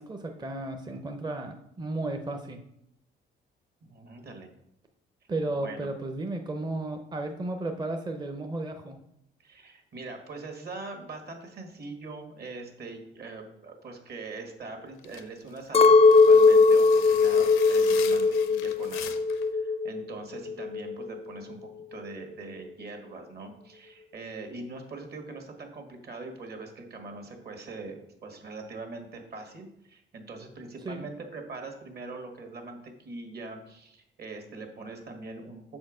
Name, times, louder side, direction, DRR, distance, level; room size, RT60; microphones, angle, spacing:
voice 1, 0.0-2.6 5.3-9.0 30.8-31.1, right 2 dB, 20° right, 4 dB, 0.6 m, -34 dB
voice 2, 3.8-4.5 5.5-5.9 9.4-19.2 19.5-21.6 21.9-35.6, right 3 dB, 55° right, 4 dB, 1.5 m, -42 dB
sound 1, 15.0-19.5, left 9 dB, 85° left, 0.6 m, -42 dB
Chink clink, 15.7-20.1 20.4-21.2, left 4 dB, 30° left, 0.4 m, -20 dB
6.2 x 4.4 x 4.9 m, 0.79 s
cardioid pair, 90°, 20 cm